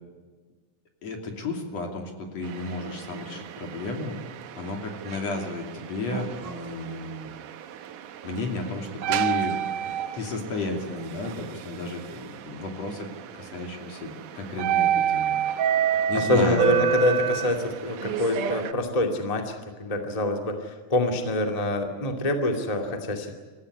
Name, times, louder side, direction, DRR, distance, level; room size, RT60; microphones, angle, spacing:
voice 1, 1.0-4.2 4.6-7.3 8.2-13.1 13.3-15.3 15.9-16.8, left 3 dB, 55° left, 3 dB, 3.9 m, -33 dB
sound 1, 2.4-18.7, right 9 dB, 75° right, 2.7 m, -30 dB
voice 2, 16.1-19.5 19.8-23.3, left 1 dB, 15° left, 3 dB, 2.0 m, -25 dB
27.5 x 15.0 x 9.8 m, 1.4 s
omnidirectional pair, 3.6 m